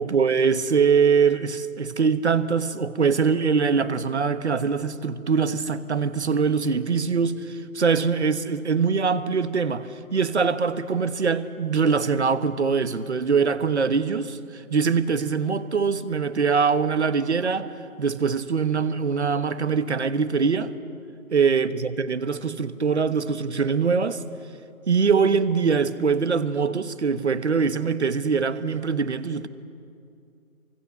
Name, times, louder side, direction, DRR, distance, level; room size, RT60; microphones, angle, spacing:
voice 1, 0.0-17.7 18.0-20.7 21.3-24.2 24.9-29.5, right 5 dB, 50° right, 1.2 m, -23 dB
28.5 x 24.0 x 6.9 m
figure-of-eight pair, 155°, 43 cm